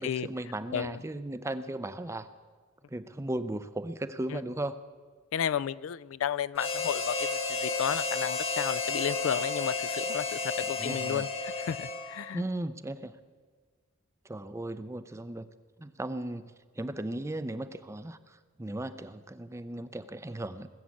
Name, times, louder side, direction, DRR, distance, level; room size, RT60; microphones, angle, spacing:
voice 1, 0.0-2.3 2.9-4.8 10.8-11.3 12.3-13.1 14.2-15.5 15.8-20.7, right 1 dB, 15° right, 13 dB, 0.5 m, -36 dB
voice 2, 5.3-11.3 11.6-12.4, left 8 dB, 65° left, 19 dB, 0.3 m, -32 dB
Harmonica, 6.6-12.3, left 4 dB, 25° left, 1.0 m, -32 dB
20.0 x 7.6 x 8.4 m, 1.5 s
head